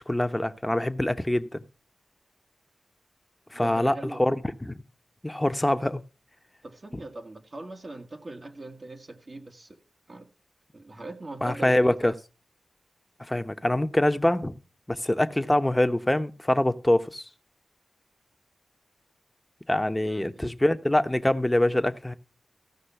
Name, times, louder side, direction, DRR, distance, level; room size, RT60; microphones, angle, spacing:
voice 1, 0.1-1.6 3.5-4.8 5.2-6.0 6.9-7.0 11.4-12.1 13.3-14.5 14.9-17.2 19.7-22.1, left 1 dB, 15° left, 1.0 m, -24 dB
voice 2, 3.5-4.2 6.6-9.8 10.1-10.3 10.7-12.2 20.0-20.2, right 2 dB, 50° right, 1.8 m, -41 dB
15.0 x 6.0 x 5.7 m
cardioid pair, 50°, 0 cm